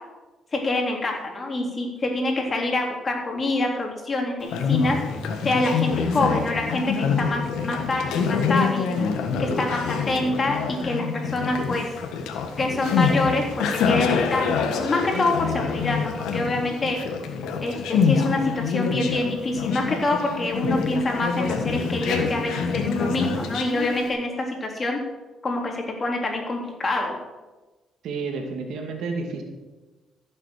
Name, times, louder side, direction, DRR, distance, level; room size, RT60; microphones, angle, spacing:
voice 1, 0.5-5.0 5.4-9.0 9.4-11.9 12.6-17.0 17.6-25.0 25.4-27.2, left 2 dB, 35° left, 1 dB, 3.6 m, -26 dB
Conversation, 4.4-24.1, left 5 dB, 90° left, 1.5 m, -26 dB
voice 2, 28.0-29.4, right 4 dB, 80° right, 4 dB, 2.2 m, -30 dB
14.5 x 7.4 x 6.6 m, 1.2 s
cardioid pair, 90°, 0 cm